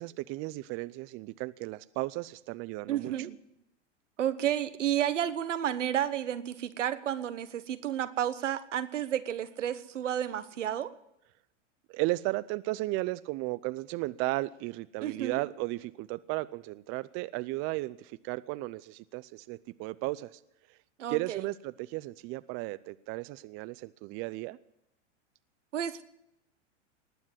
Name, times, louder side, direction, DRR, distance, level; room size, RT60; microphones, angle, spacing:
voice 1, 0.0-3.1 11.9-20.4 21.1-24.6, right 20 dB, 35° right, 17 dB, 0.5 m, -35 dB
voice 2, 2.9-3.4 4.2-10.9 15.0-15.4 21.0-21.4 25.7-26.0, right 10 dB, 85° right, 13 dB, 1.2 m, -31 dB
19.5 x 7.3 x 9.9 m, 0.83 s
hypercardioid pair, 110°, 36 cm